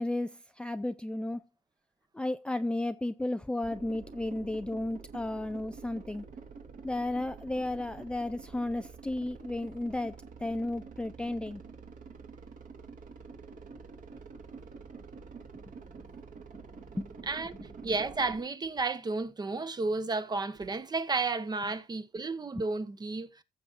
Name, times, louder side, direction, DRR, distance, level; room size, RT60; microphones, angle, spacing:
voice 1, 0.0-1.4 2.1-6.3 6.8-11.6 17.0-17.3, left 1 dB, 5° left, 0.4 m, -33 dB
sound 1, 3.6-18.4, right 5 dB, 50° right, 2.7 m, -48 dB
voice 2, 17.8-23.3, right 3 dB, 25° right, 1.2 m, -32 dB
15.5 x 7.2 x 2.6 m
cardioid pair, 110°, 17 cm